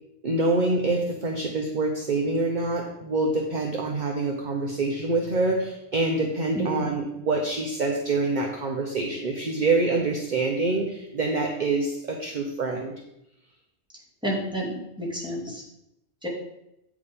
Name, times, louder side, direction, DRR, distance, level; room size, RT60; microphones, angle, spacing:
voice 1, 0.2-12.9, right 3 dB, 45° right, 1 dB, 0.9 m, -26 dB
voice 2, 6.5-6.9 14.2-15.6 16.2-16.3, right 1 dB, 5° right, -5 dB, 2.4 m, -30 dB
8.4 x 5.0 x 5.1 m, 0.84 s
omnidirectional pair, 1.2 m